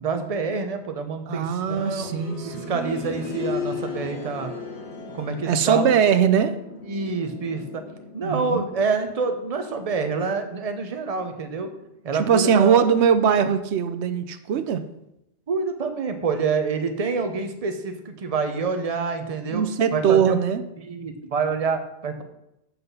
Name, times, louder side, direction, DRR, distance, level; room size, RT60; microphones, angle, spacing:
voice 1, 0.0-2.1 2.4-4.6 5.1-5.9 6.9-7.8 8.1-11.7 12.0-12.9 15.5-19.6 19.9-20.4 20.8-22.2, right 4 dB, 35° right, 7 dB, 0.9 m, -27 dB
sound 1, 1.3-12.1 13.4-13.5, left 4 dB, 80° left, 1.7 m, -37 dB
voice 2, 1.3-2.8 5.5-6.6 8.2-8.6 12.2-14.8 19.5-20.6, right 7 dB, 85° right, 11 dB, 0.9 m, -21 dB
7.7 x 5.8 x 5.4 m, 0.84 s
omnidirectional pair, 1.1 m